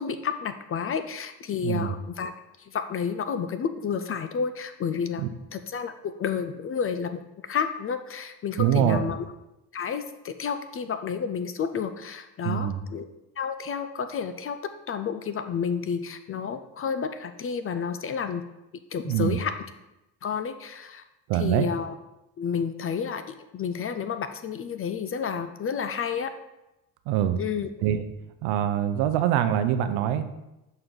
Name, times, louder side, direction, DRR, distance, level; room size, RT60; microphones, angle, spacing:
voice 1, 0.0-2.3 2.6-5.2 5.5-9.2 9.7-13.1 13.4-14.6 14.9-18.4 18.9-19.5 20.2-21.0 21.3-21.9 22.4-26.3 27.4-27.7, left 6 dB, 30° left, 10 dB, 0.4 m, -30 dB
voice 2, 1.6-1.9 5.2-5.3 8.6-9.1 12.4-12.8 19.0-19.4 21.3-21.7 27.1-27.4 27.8-28.0 28.4-30.3, right 10 dB, 75° right, 10 dB, 0.7 m, -24 dB
6.7 x 4.4 x 3.8 m, 0.95 s
supercardioid pair, 75°, 47 cm